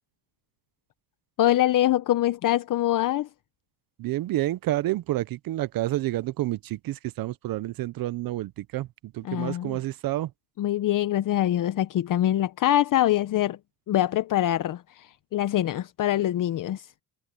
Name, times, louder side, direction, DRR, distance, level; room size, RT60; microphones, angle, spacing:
voice 1, 1.4-3.3 9.3-9.8 10.6-13.6 13.9-16.9, left 13 dB, 55° left, 0.8 m, -24 dB
voice 2, 4.0-10.3, right 15 dB, 65° right, 0.7 m, -29 dB
cardioid pair, 100°, 38 cm